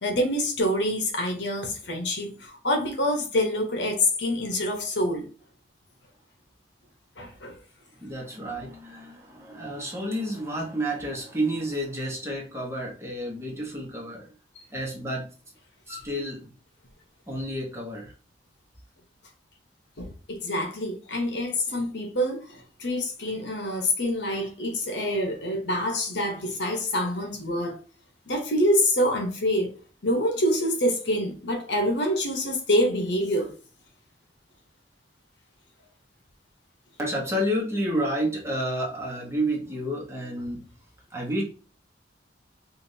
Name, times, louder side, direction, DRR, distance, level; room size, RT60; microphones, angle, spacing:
voice 1, 0.0-5.2 7.2-7.5 15.9-16.0 20.0-27.7 28.3-29.7 30.0-33.5, left 1 dB, 70° left, 1.0 m, -26 dB
voice 2, 8.0-14.3 14.7-15.4 15.9-16.5 17.3-18.1 37.0-40.7 41.1-41.4, right 1 dB, 15° right, 1.0 m, -30 dB
5.0 x 2.5 x 2.7 m
head